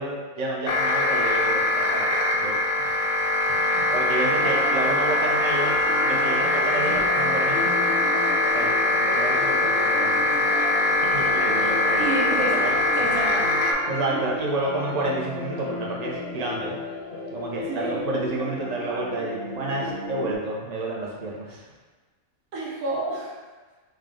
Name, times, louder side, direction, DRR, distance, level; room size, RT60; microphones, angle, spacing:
voice 1, 0.0-1.6 1.9-2.1 2.3-2.6 2.8-2.9 3.5-5.7 6.0-7.8 8.5-10.7 11.1-12.5 13.9-16.7 17.3-21.6, right 2 dB, 50° right, -3 dB, 0.4 m, -30 dB
sound 1, 0.7-13.7, left 2 dB, 90° left, 1.0 m, -22 dB
sound 2, 4.4-20.4, left 1 dB, 60° left, 0.7 m, -34 dB
voice 2, 11.6-12.6 13.0-13.5 17.7-18.0 22.5-23.3, right 2 dB, 85° right, -5 dB, 1.3 m, -30 dB
3.5 x 2.3 x 3.7 m, 1.3 s
omnidirectional pair, 1.5 m